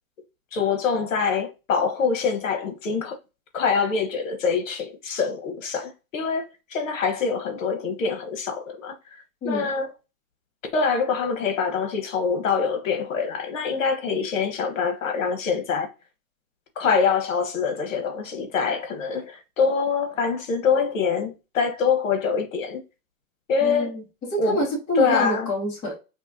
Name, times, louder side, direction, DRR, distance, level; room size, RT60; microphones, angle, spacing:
voice 1, 0.5-3.2 3.5-8.9 9.4-9.9 10.7-15.9 16.8-22.8 23.5-23.9 24.4-24.7 25.0-25.5, left 5 dB, 60° left, 1.2 m, -25 dB
voice 2, 23.6-26.0, equal, 5° left, 0.7 m, -27 dB
5.6 x 2.3 x 2.7 m
hypercardioid pair, 175°, 44 cm